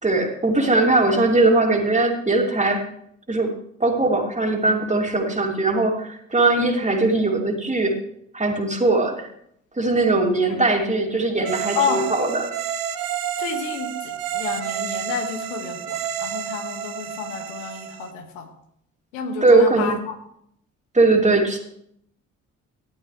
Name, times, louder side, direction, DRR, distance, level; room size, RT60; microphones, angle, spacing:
voice 1, 0.0-2.9 3.3-3.5 3.8-7.9 8.3-9.3 9.8-12.5 19.4-19.9 20.9-21.6, right 2 dB, 20° right, 2 dB, 2.9 m, -20 dB
sound 1, 11.4-18.1, right 9 dB, 65° right, 1.2 m, -30 dB
voice 2, 11.7-12.1 13.4-18.5 19.1-20.2, left 5 dB, 70° left, 4 dB, 2.0 m, -30 dB
17.0 x 12.0 x 3.3 m, 0.71 s
figure-of-eight pair, 45°, 39 cm